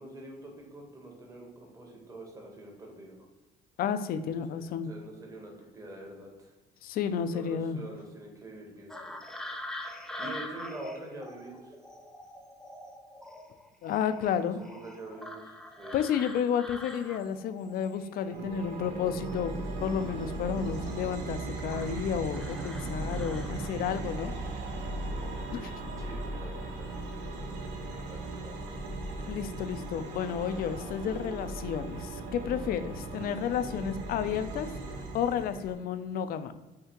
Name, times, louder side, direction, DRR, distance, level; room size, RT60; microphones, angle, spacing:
voice 1, 0.0-3.3 4.2-6.5 7.3-9.3 10.2-11.8 14.4-15.9 26.0-26.9 27.9-28.5, right 2 dB, 20° right, 0 dB, 1.2 m, -46 dB
voice 2, 3.8-4.9 6.8-7.8 13.8-14.6 15.9-24.3 25.5-25.7 29.3-34.7 35.1-36.5, left 8 dB, 60° left, 11 dB, 0.4 m, -31 dB
sound 1, 8.9-18.9 19.2-21.2 21.7-24.0 25.2-25.4 25.9-26.3 26.6-26.9, left 1 dB, 5° left, 0.5 m, -45 dB
sound 2, 18.3-35.7, right 2 dB, 85° right, 0.8 m, -37 dB
5.6 x 2.8 x 2.9 m, 1.1 s
cardioid pair, 110°, 17 cm